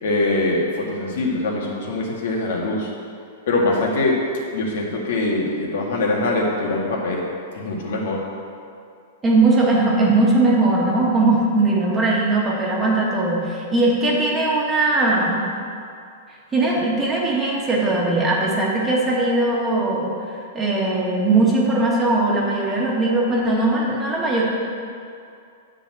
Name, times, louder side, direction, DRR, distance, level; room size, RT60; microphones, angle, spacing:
voice 1, 0.0-2.9 3.5-4.2 4.5-7.2 7.5-8.2, left 2 dB, 70° left, -2 dB, 2.0 m, -23 dB
voice 2, 9.2-15.4 16.5-24.4, right 2 dB, 15° right, -4 dB, 1.6 m, -19 dB
9.9 x 4.1 x 7.5 m, 2.4 s
hypercardioid pair, 150°, 0 cm